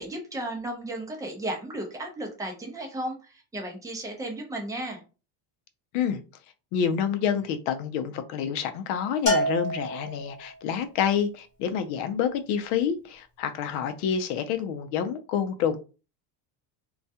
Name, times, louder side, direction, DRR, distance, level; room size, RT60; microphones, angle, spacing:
voice 1, 0.0-5.0, right 1 dB, 10° right, 0.5 m, -34 dB
voice 2, 6.7-15.8, left 8 dB, 80° left, 0.6 m, -28 dB
Bell, 9.3-10.6, equal, 40° left, 0.9 m, -27 dB
2.3 x 2.2 x 2.7 m
cardioid pair, 130°, 44 cm